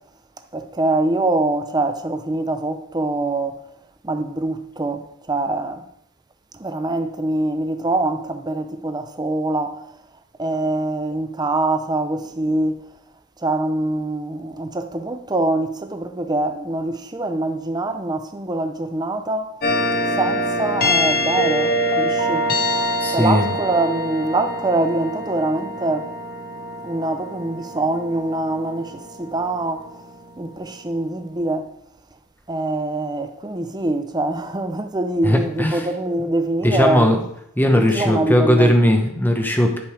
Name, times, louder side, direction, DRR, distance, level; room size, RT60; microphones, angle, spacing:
voice 1, 0.5-3.6 4.0-5.8 6.5-9.9 10.4-12.9 13.4-19.5 20.2-22.5 23.1-26.1 26.8-29.9 30.4-31.7 32.5-37.1 37.7-38.8, right 2 dB, 20° right, 0.6 m, -24 dB
sound 1, 19.6-30.3, equal, 45° left, 1.4 m, -25 dB
voice 2, 23.0-23.4 35.2-35.9 36.6-37.2 37.6-39.8, left 1 dB, 10° left, 0.9 m, -18 dB
10.5 x 5.3 x 4.9 m
head